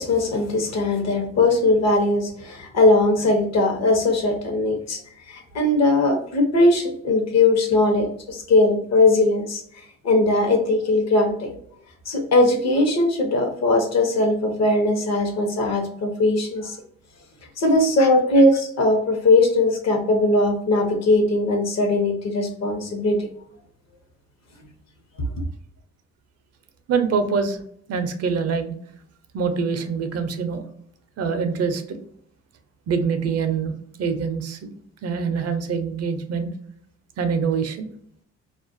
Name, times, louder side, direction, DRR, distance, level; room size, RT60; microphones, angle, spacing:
voice 1, 0.0-5.0 5.3-11.5 12.1-16.8 17.6-23.3 25.2-25.3, left 2 dB, 60° left, 3 dB, 0.8 m, -20 dB
voice 2, 26.9-27.6 27.9-28.7 29.3-30.6 31.2-32.0 32.9-33.7 34.0-34.7 35.0-36.5 37.2-37.9, right 5 dB, 55° right, 8 dB, 0.5 m, -24 dB
2.4 x 2.2 x 2.5 m, 0.66 s
cardioid pair, 90°, 30 cm